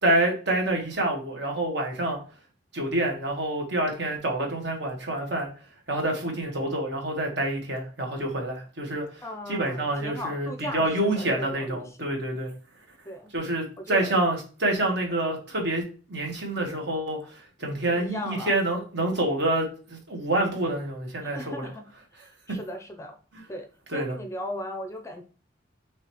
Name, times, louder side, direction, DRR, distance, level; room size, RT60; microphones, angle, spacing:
voice 1, 0.0-2.2 2.7-5.5 5.9-9.2 9.5-12.5 13.3-15.8 16.1-21.7 22.5-22.6 23.9-24.2, right 1 dB, 60° right, 0 dB, 1.3 m, -27 dB
voice 2, 9.2-12.0 13.1-13.3 13.8-14.1 17.9-18.6 21.2-21.8 22.2-23.2 23.5-25.2, left 1 dB, 15° left, 5 dB, 0.5 m, -37 dB
4.9 x 3.3 x 2.9 m, 0.37 s
head